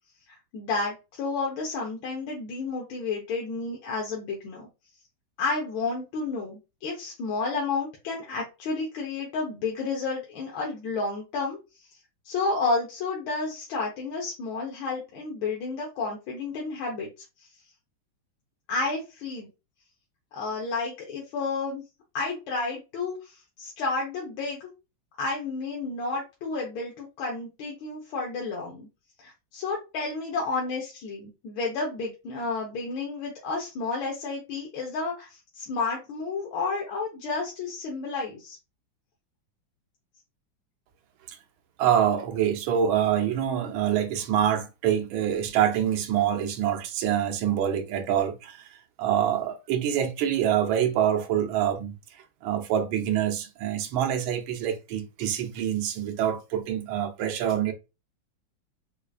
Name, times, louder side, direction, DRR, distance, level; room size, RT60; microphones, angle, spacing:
voice 1, 0.3-4.7 5.4-11.6 12.2-17.1 17.4-17.5 18.7-19.5 20.3-21.8 22.1-24.7 25.2-28.9 29.2-38.6, left 3 dB, 80° left, 1.6 m, -31 dB
voice 2, 41.8-57.7, right 10 dB, 90° right, 1.5 m, -26 dB
4.8 x 2.4 x 2.3 m
omnidirectional pair, 2.2 m